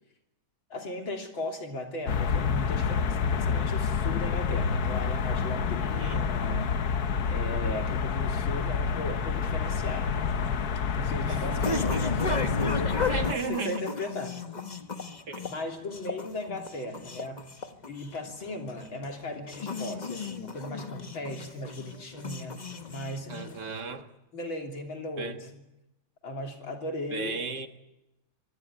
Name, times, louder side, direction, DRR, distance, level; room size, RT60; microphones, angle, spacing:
voice 1, 0.7-6.8 7.3-10.1 10.9-14.3 15.5-17.4 17.9-22.6 22.9-23.6 24.3-25.6 26.2-27.5, left 1 dB, 70° left, 2 dB, 3.9 m, -37 dB
sound 1, 2.1-13.3, left 6 dB, 55° left, 1.4 m, -28 dB
sound 2, 10.3-23.8, left 4 dB, 25° left, 1.0 m, -36 dB
voice 2, 11.3-12.0 13.1-13.8 15.3-15.5 23.3-24.1 25.2-25.4 27.1-27.7, right 5 dB, 55° right, 7 dB, 1.9 m, -35 dB
24.5 x 18.5 x 9.9 m, 0.95 s
omnidirectional pair, 2.3 m